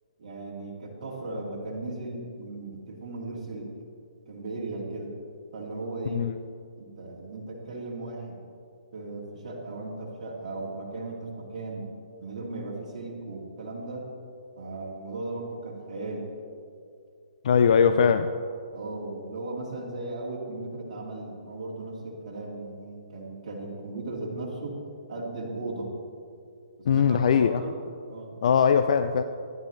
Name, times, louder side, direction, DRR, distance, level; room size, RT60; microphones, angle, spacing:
voice 1, 0.2-3.7 4.3-5.1 5.5-6.2 6.8-8.4 8.9-11.9 12.2-14.0 14.6-16.2 17.8-18.1 18.7-24.8 25.1-25.9 26.9-27.8 28.0-28.3, right 2 dB, 50° right, 2.3 m, -36 dB
voice 2, 17.4-18.3 26.9-27.6 28.4-29.2, left 7 dB, 60° left, 0.4 m, -20 dB
15.0 x 11.0 x 3.2 m
hypercardioid pair, 135°, 4 cm